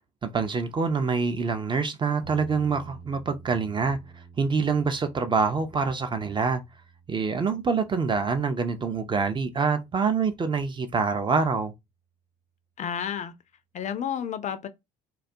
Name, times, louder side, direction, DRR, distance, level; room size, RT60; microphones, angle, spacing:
voice 1, 0.2-4.0 4.4-6.6 7.1-11.7, right 5 dB, 25° right, 0.4 m, -26 dB
sound 1, 2.2-10.3, right 5 dB, 90° right, 0.7 m, -50 dB
voice 2, 12.8-13.3 13.7-14.7, left 8 dB, 35° left, 0.4 m, -31 dB
2.3 x 2.1 x 2.7 m
hypercardioid pair, 55°, 20 cm